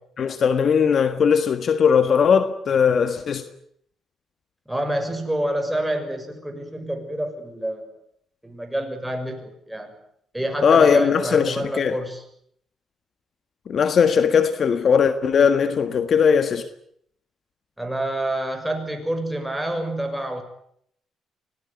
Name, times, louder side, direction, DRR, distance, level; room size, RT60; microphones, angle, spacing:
voice 1, 0.2-3.4 10.6-12.0 13.7-16.7, left 6 dB, 50° left, 1.6 m, -19 dB
voice 2, 4.7-7.9 8.4-9.9 10.3-12.2 17.8-20.4, right 1 dB, 5° right, 6.5 m, -27 dB
26.0 x 18.0 x 9.7 m
cardioid pair, 105°, 0 cm